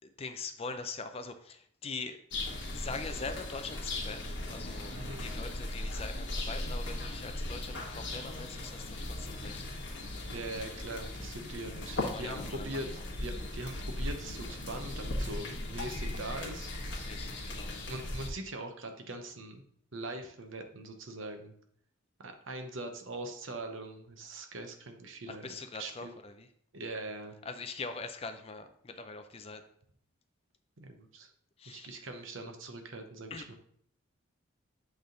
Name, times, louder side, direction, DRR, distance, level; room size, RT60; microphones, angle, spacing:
voice 1, 0.0-2.2 2.4-4.9 5.2-9.7 12.0-12.8 17.0-17.7 25.3-26.5 27.5-29.6 31.6-32.0 33.3-33.5, left 4 dB, 30° left, 8 dB, 0.5 m, -42 dB
sound 1, 2.3-18.3, left 1 dB, 60° left, 1.5 m, -38 dB
voice 2, 10.3-16.7 17.9-19.6 19.9-21.5 22.2-26.1 26.7-27.3 30.8-31.3 31.7-33.6, right 2 dB, 70° right, 5 dB, 0.9 m, -42 dB
8.0 x 3.6 x 3.8 m, 0.64 s
head